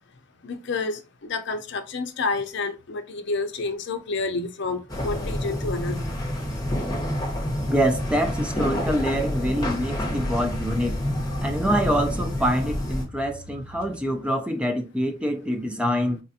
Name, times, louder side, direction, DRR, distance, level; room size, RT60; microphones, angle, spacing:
voice 1, 0.4-6.1, left 3 dB, 60° left, 0.5 m, -29 dB
sound 1, 4.9-13.0, left 1 dB, 20° left, 1.0 m, -28 dB
voice 2, 7.7-11.0 11.4-16.2, equal, 5° right, 0.4 m, -25 dB
sound 2, 8.8-14.4, left 2 dB, 85° right, 1.3 m, -44 dB
4.2 x 2.4 x 2.7 m
head